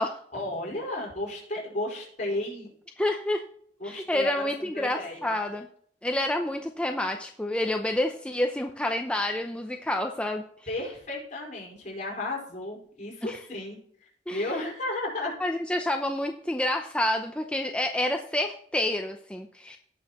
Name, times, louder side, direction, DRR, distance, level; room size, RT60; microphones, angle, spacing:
voice 1, 0.3-2.7 3.8-4.3 4.6-5.3 10.7-13.8 14.3-15.3, left 2 dB, 45° left, -3 dB, 4.7 m, -33 dB
voice 2, 3.0-3.4 3.8-5.7 6.0-10.4 13.2-13.4 14.3-14.5 15.4-19.8, left 1 dB, 5° left, 4 dB, 0.6 m, -28 dB
17.5 x 6.2 x 3.0 m, 0.62 s
head